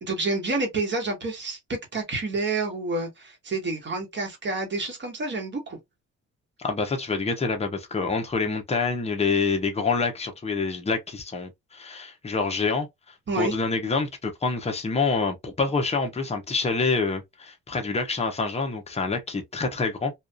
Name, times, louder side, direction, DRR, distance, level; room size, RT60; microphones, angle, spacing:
voice 1, 0.0-5.8 13.3-13.5, right 3 dB, 40° right, 1.2 m, -29 dB
voice 2, 6.6-12.9 13.4-20.1, left 4 dB, 20° left, 0.8 m, -26 dB
2.7 x 2.4 x 2.2 m
cardioid pair, 90°, 30 cm